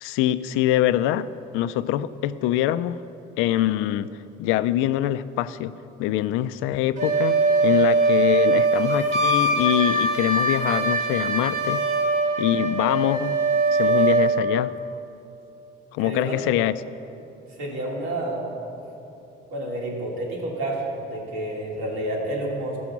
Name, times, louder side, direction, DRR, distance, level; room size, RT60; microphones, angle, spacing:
voice 1, 0.0-1.3 1.5-3.0 3.4-4.1 4.4-5.7 6.0-11.8 12.4-13.4 13.7-14.7 15.9-16.7, left 13 dB, 90° left, 14 dB, 0.4 m, -24 dB
Wind instrument woodwind instrument, 7.0-14.4, right 2 dB, 40° right, 1.0 m, -21 dB
voice 2, 16.0-16.4 17.6-18.6 19.5-22.8, right 1 dB, 80° right, -3 dB, 2.6 m, -29 dB
14.5 x 6.2 x 6.0 m, 2.9 s
cardioid pair, 175°, 20 cm